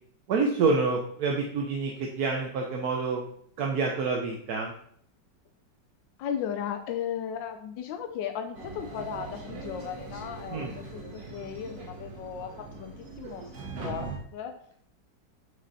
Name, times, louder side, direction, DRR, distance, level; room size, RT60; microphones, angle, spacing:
voice 1, 0.3-3.2 3.6-4.7 10.5-10.7, right 4 dB, 65° right, 0 dB, 1.2 m, -27 dB
voice 2, 6.2-13.4 13.8-14.6, left 8 dB, 90° left, 7 dB, 1.3 m, -36 dB
sound 1, 8.5-14.2, right 3 dB, 80° right, 2.0 m, -41 dB
6.3 x 5.3 x 4.1 m, 0.65 s
omnidirectional pair, 2.0 m